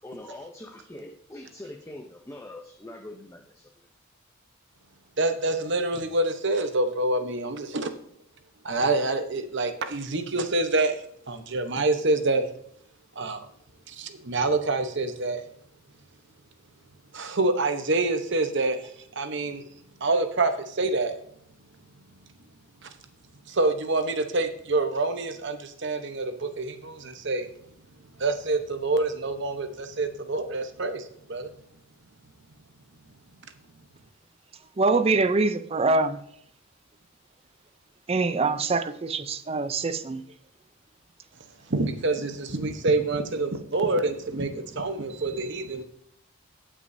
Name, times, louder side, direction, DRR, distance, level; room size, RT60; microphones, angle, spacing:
voice 1, 0.0-3.7, left 1 dB, 15° left, 0.6 m, -43 dB
voice 2, 5.2-7.9 8.6-11.0 11.3-12.5 13.2-13.5 13.9-15.4 17.1-19.6 20.0-21.2 22.8-22.9 23.5-27.4 28.2-31.5 41.7-45.8, right 2 dB, 55° right, 1.0 m, -26 dB
voice 3, 34.8-36.2 38.1-40.2, right 3 dB, 30° right, 0.5 m, -24 dB
17.5 x 6.1 x 2.7 m
head